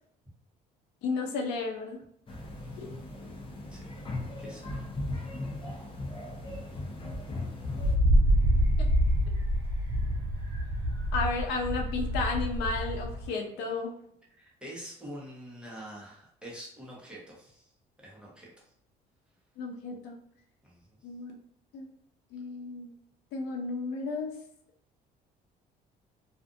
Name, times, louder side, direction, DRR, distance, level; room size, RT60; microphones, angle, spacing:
voice 1, 1.0-2.0 2.8-2.9 11.1-13.9 19.6-20.1 21.0-21.3 21.7-21.9 22.3-22.9 23.3-24.3, left 4 dB, 90° left, 2 dB, 0.6 m, -33 dB
sound 1, 2.3-8.0, left 2 dB, 30° left, 0.7 m, -38 dB
voice 2, 2.4-2.8 3.7-4.0 4.4-4.8 13.3-13.5 14.3-17.7 18.0-18.5 20.6-20.8, equal, 5° right, -5 dB, 1.0 m, -46 dB
Wind, 7.8-13.3, equal, 80° right, 0.8 m, -26 dB
2.5 x 2.4 x 2.5 m, 0.69 s
cardioid pair, 110°, 17 cm